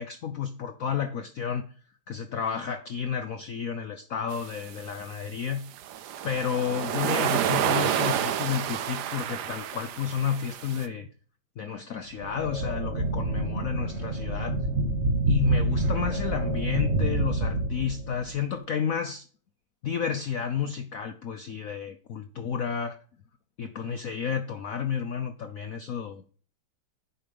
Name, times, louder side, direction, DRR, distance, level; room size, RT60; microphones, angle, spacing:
voice 1, 0.0-1.7 2.1-5.6 6.2-11.1 11.6-14.6 15.3-19.2 19.8-23.0 23.6-26.3, left 7 dB, 65° left, 7 dB, 0.8 m, -31 dB
sound 1, 4.3-4.7 5.8-10.9, right 10 dB, 65° right, 1.1 m, -29 dB
sound 2, 12.2-18.3, right 2 dB, 40° right, 1.3 m, -27 dB
9.9 x 5.2 x 5.2 m, 0.42 s
omnidirectional pair, 2.2 m